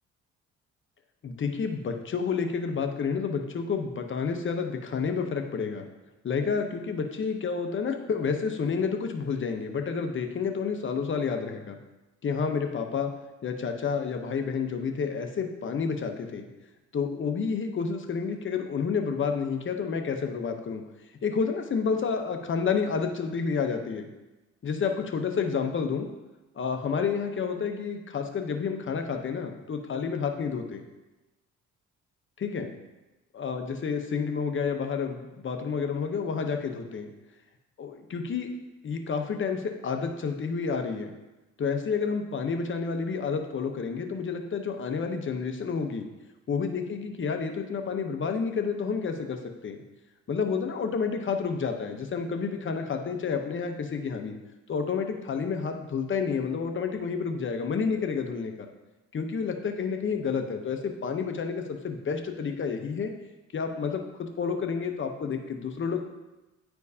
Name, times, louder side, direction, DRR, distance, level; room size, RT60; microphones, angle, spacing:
voice 1, 1.2-5.8 6.2-11.8 12.2-13.1 13.4-16.5 16.9-20.8 21.2-24.1 24.6-26.1 26.5-30.8 32.4-32.7 33.3-37.1 37.8-38.5 38.8-41.1 41.6-46.1 46.5-49.8 50.3-54.4 54.7-58.7 59.1-63.1 63.5-66.1, left 5 dB, 40° left, 5 dB, 0.9 m, -30 dB
9.6 x 4.5 x 2.8 m, 1.1 s
cardioid pair, 90°, 30 cm